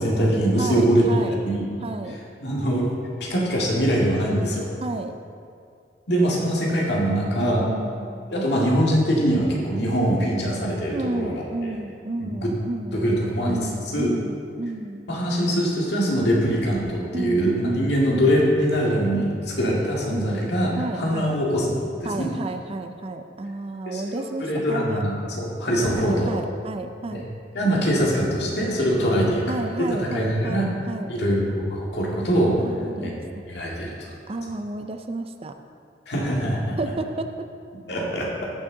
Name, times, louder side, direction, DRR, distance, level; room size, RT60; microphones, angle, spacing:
voice 1, 0.0-1.7 2.4-2.9 3.2-4.7 6.1-7.7 8.3-11.7 12.2-12.5 12.9-13.6 13.9-14.1 15.1-21.7 22.0-22.3 23.9-26.3 27.1-27.2 27.5-29.4 30.0-30.7 31.1-32.6 33.0-33.1 33.5-34.1 36.1-36.8 37.9-38.5, equal, 65° left, -3 dB, 2.0 m, -23 dB
voice 2, 0.6-1.4 1.8-2.2 4.8-5.1 7.4-8.3 10.9-13.1 13.4-15.2 17.1-18.3 19.1-21.4 22.0-25.0 25.7-27.3 29.0-31.5 32.6-33.2 34.3-35.6 36.8-37.5, right 2 dB, 35° right, 7 dB, 0.4 m, -32 dB
14.5 x 6.2 x 3.8 m, 2.4 s
head